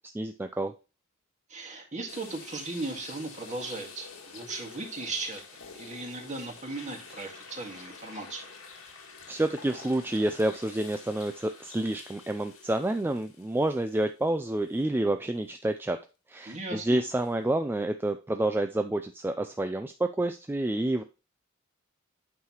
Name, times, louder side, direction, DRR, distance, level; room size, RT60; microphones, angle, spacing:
voice 1, 0.1-0.7 9.3-16.0 16.3-21.0, right 1 dB, 10° right, 7 dB, 0.3 m, -29 dB
voice 2, 1.5-5.4 5.7-8.5 16.5-17.0, right 3 dB, 35° right, 2 dB, 1.8 m, -37 dB
sound 1, 2.1-14.3 14.7-14.8 17.2-17.3, left 5 dB, 80° left, 1.7 m, -48 dB
8.6 x 5.7 x 3.0 m, 0.31 s
head